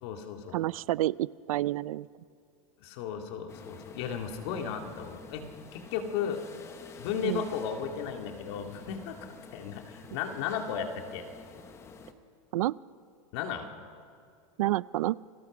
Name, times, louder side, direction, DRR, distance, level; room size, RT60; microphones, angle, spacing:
voice 1, 0.0-0.6 2.8-5.4 5.7-6.4 7.0-9.2 9.5-11.3 13.3-13.7, left 7 dB, 45° left, 4 dB, 2.3 m, -35 dB
voice 2, 0.5-2.1 7.2-7.4 12.5-12.7 14.6-15.2, right 15 dB, 75° right, 21 dB, 0.5 m, -29 dB
sound 1, 3.5-12.1, left 5 dB, 15° left, 1.0 m, -50 dB
29.0 x 20.5 x 6.1 m, 2.4 s
supercardioid pair, 165°, 18 cm